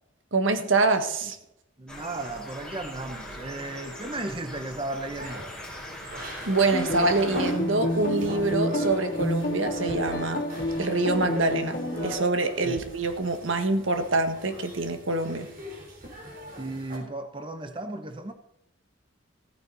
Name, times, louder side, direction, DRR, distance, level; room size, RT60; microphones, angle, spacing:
voice 1, 0.3-1.4 6.5-10.4 10.8-15.5, right 3 dB, 75° right, 1.6 m, -25 dB
voice 2, 1.8-5.5 12.6-12.8 16.6-18.3, right 2 dB, 25° right, 0.9 m, -35 dB
sound 1, 1.9-7.5, left 1 dB, 5° left, 4.4 m, -40 dB
sound 2, 5.1-17.0, equal, 45° right, 4.0 m, -40 dB
sound 3, 6.7-12.2, left 1 dB, 40° left, 2.7 m, -30 dB
15.5 x 9.4 x 4.1 m
head